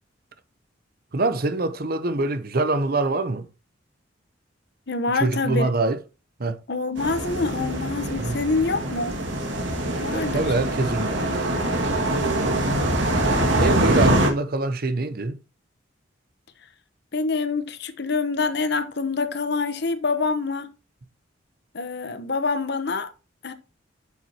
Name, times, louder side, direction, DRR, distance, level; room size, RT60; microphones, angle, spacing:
voice 1, 1.1-3.4 5.1-6.0 6.4-6.6 8.2-8.4 9.8-11.5 12.2-12.7 13.0-13.3 13.6-15.4, right 2 dB, 50° right, 0.8 m, -25 dB
voice 2, 4.9-5.7 6.7-9.1 10.0-10.4 17.1-20.7 21.7-23.1 23.4-23.5, left 4 dB, 60° left, 1.0 m, -26 dB
sound 1, 7.0-14.3, right 1 dB, 70° right, 2.1 m, -24 dB
8.7 x 7.1 x 2.9 m
head